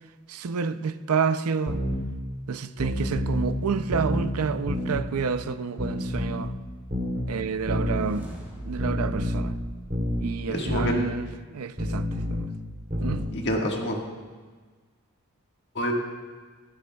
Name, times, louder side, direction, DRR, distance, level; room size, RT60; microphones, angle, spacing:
voice 1, 0.3-1.8 2.5-6.5 7.3-8.3 8.6-9.6 10.2-12.5 13.0-13.2, right 5 dB, 80° right, 0.5 m, -29 dB
sound 1, 1.7-2.0 2.8-3.5 3.9-4.3 4.7-5.0 5.8-6.5 6.9-7.2 7.7-8.0 8.8-9.5 9.9-10.2 10.7-11.0 11.8-12.5 12.9-13.2, left 1 dB, 35° right, 2.7 m, -28 dB
sound 2, 7.6-10.9, equal, 10° right, 3.0 m, -44 dB
voice 2, 10.5-11.1 13.3-14.0 15.7-15.9, equal, 50° left, 1.6 m, -27 dB
15.0 x 14.5 x 2.3 m
head